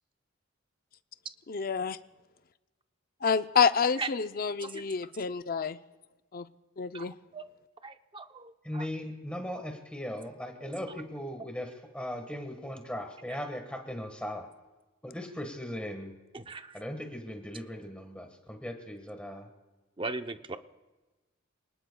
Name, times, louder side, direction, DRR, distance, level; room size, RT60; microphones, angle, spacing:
voice 1, 1.5-2.0 3.2-5.8 6.3-6.4 6.8-7.1, left 6 dB, 45° left, 11 dB, 0.5 m, -28 dB
voice 2, 4.6-5.1 6.9-7.4 7.8-8.9 16.3-16.8 20.0-20.6, right 3 dB, 25° right, 8 dB, 0.6 m, -39 dB
voice 3, 8.6-14.5 15.0-16.1 16.7-19.5, equal, 5° left, 4 dB, 1.4 m, -38 dB
28.5 x 19.5 x 2.3 m, 1.2 s
head